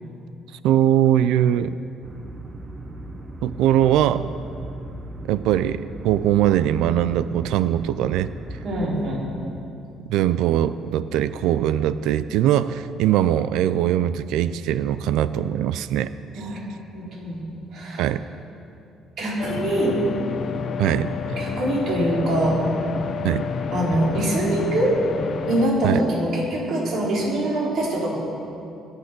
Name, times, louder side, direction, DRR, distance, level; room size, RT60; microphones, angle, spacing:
voice 1, 0.6-1.8 3.4-4.3 5.3-8.3 10.1-16.1 18.0-18.2 20.8-21.1 23.2-23.5 25.8-26.0, right 11 dB, 85° right, 14 dB, 0.4 m, -21 dB
sound 1, 2.0-8.9, right 1 dB, 20° right, 0.9 m, -37 dB
voice 2, 8.6-9.2 16.3-16.6 16.9-17.4 17.7-18.1 19.2-20.0 21.4-22.7 23.7-25.1 25.5-28.2, right 1 dB, 55° right, -5 dB, 4.8 m, -23 dB
sound 2, 19.4-25.7, left 6 dB, 45° left, 0.8 m, -29 dB
22.0 x 8.9 x 6.1 m, 2.6 s
cardioid pair, 145°, 0 cm